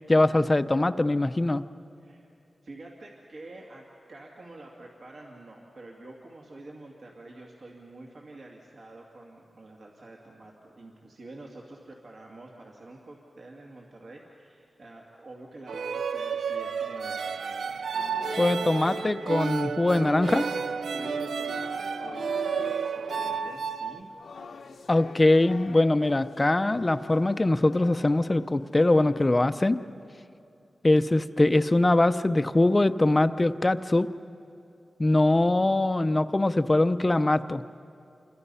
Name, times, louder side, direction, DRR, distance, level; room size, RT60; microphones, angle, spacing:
voice 1, 0.1-1.6 18.4-20.4 24.9-29.8 30.8-34.1 35.0-37.6, left 2 dB, 20° left, 11 dB, 0.5 m, -22 dB
voice 2, 2.0-2.3 2.6-19.0 20.0-20.3 20.8-24.1, right 2 dB, 65° right, -2 dB, 2.4 m, -47 dB
sound 1, 15.7-24.0, right 6 dB, 85° right, 0.5 m, -31 dB
sound 2, 17.9-30.0, left 4 dB, 90° left, 0.9 m, -45 dB
28.5 x 24.5 x 5.6 m, 2.7 s
wide cardioid pair, 150°, 0 cm